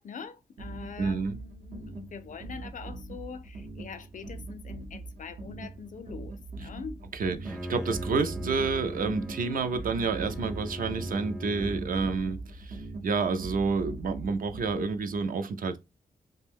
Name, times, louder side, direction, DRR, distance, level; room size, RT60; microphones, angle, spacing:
voice 1, 0.0-7.0, left 6 dB, 55° left, 0.4 m, -43 dB
sound 1, 0.6-15.2, right 3 dB, 85° right, 0.8 m, -41 dB
voice 2, 1.0-1.4 7.1-15.8, right 4 dB, 60° right, 0.4 m, -29 dB
Bowed string instrument, 7.4-12.3, equal, 5° right, 0.4 m, -39 dB
2.5 x 2.1 x 3.4 m
wide cardioid pair, 110°, 16 cm